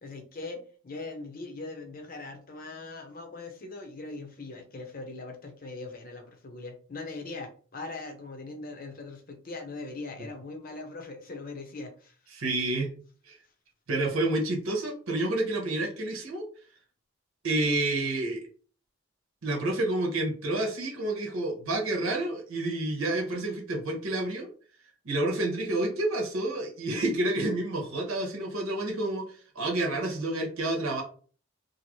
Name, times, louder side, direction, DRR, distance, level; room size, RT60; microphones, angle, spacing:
voice 1, 0.0-12.2, left 3 dB, 45° left, 4 dB, 0.6 m, -41 dB
voice 2, 12.3-12.9 13.3-13.4 13.9-16.5 17.4-18.4 19.4-24.5 25.0-31.0, right 2 dB, 85° right, 0 dB, 0.9 m, -29 dB
2.7 x 2.5 x 3.0 m, 0.42 s
head